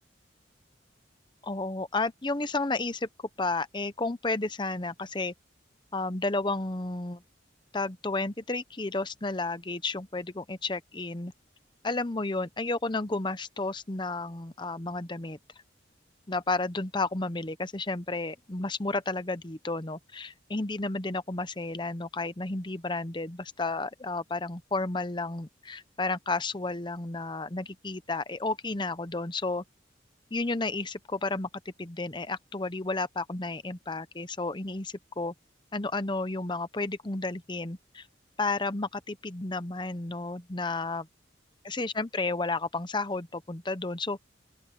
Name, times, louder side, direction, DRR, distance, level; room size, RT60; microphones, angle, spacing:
voice 1, 1.4-3.1 3.4-5.3 5.9-7.2 7.7-11.3 11.8-15.4 16.3-29.6 30.3-31.5 31.8-35.3 35.7-38.1 38.4-41.1 41.6-44.2, left 3 dB, 25° left, 0.8 m, -32 dB
open air
head